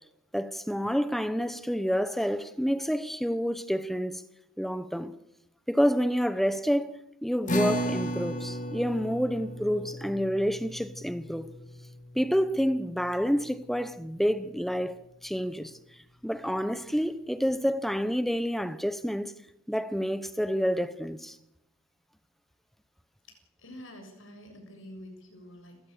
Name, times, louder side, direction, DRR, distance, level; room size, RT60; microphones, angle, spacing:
voice 1, 0.3-4.2 4.6-5.2 5.7-11.5 12.1-15.0 15.2-15.7 16.2-19.3 19.7-21.4, equal, ahead, 1.0 m, -28 dB
sound 1, 7.5-14.1, equal, 35° left, 2.3 m, -35 dB
voice 2, 23.6-25.9, equal, 65° left, 7.5 m, -47 dB
29.5 x 16.5 x 6.8 m
head